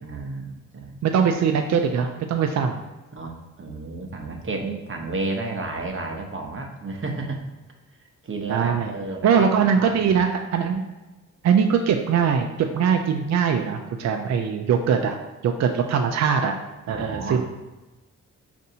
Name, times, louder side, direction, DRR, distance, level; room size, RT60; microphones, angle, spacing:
voice 1, 0.0-1.0 3.1-7.4 8.2-10.2 16.9-17.4, right 3 dB, 40° right, 2 dB, 0.8 m, -32 dB
voice 2, 1.0-2.8 8.5-9.0 9.2-10.8 11.4-15.2 15.4-16.6 16.9-17.4, right 7 dB, 55° right, 4 dB, 0.4 m, -21 dB
5.2 x 2.6 x 2.7 m, 1.1 s
cardioid pair, 65°, 33 cm